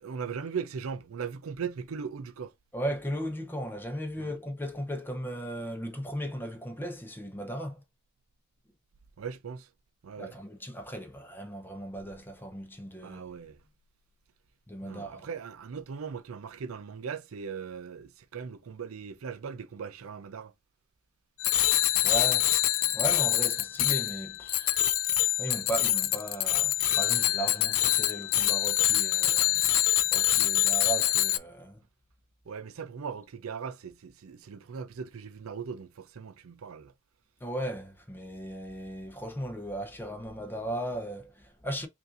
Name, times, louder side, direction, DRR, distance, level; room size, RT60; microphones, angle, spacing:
voice 1, 0.0-2.5 4.2-4.3 9.2-9.7 10.0-10.4 13.0-13.6 14.8-20.5 32.5-36.9, right 6 dB, 85° right, 0.5 m, -39 dB
voice 2, 2.7-7.8 10.2-13.2 14.7-15.3 22.0-22.5 22.9-24.8 25.4-29.7 30.1-31.8 37.4-41.9, right 1 dB, 10° left, 0.7 m, -36 dB
Bicycle bell, 21.4-31.4, left 13 dB, 90° left, 0.4 m, -25 dB
5.3 x 2.6 x 2.5 m
head